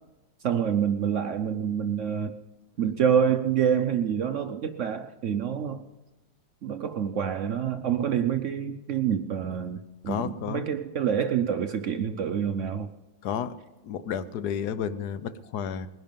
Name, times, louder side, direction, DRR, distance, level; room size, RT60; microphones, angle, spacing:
voice 1, 0.4-2.3 2.8-5.8 6.6-12.9, right 8 dB, 70° right, 8 dB, 0.7 m, -27 dB
voice 2, 10.1-10.6 13.2-13.5 13.8-15.9, left 8 dB, 65° left, 13 dB, 1.2 m, -31 dB
20.5 x 11.0 x 5.2 m, 1.1 s
omnidirectional pair, 2.1 m